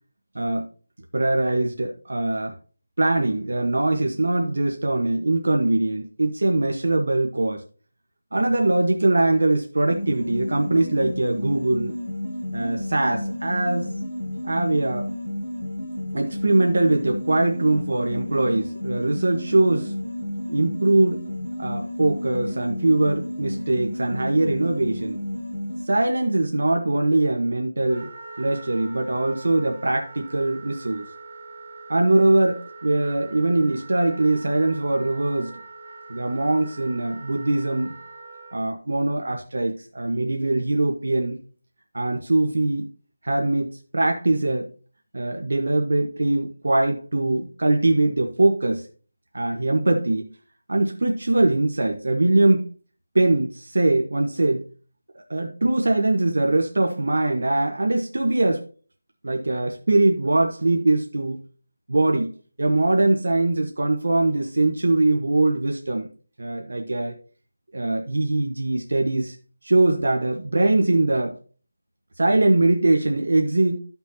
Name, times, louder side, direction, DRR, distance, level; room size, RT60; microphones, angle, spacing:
voice 1, 0.3-0.7 1.1-2.5 3.0-7.6 8.3-12.0 12.5-13.9 14.4-15.1 16.1-19.9 20.5-21.2 21.6-25.2 25.9-28.1 28.4-31.0 31.9-35.5 36.1-37.9 38.5-41.4 41.9-42.9 43.2-44.7 45.1-48.9 49.3-50.3 50.7-52.7 53.1-54.6 55.3-58.7 59.2-61.4 61.9-62.3 62.6-66.1 66.4-67.1 67.7-69.4 69.6-71.4 72.2-73.8, right 2 dB, 65° right, 1.3 m, -22 dB
sound 1, 9.9-25.9, left 1 dB, 20° left, 2.7 m, -32 dB
Wind instrument woodwind instrument, 27.9-38.6, right 3 dB, 30° right, 3.5 m, -43 dB
13.5 x 6.1 x 2.8 m
figure-of-eight pair, 175°, 0 cm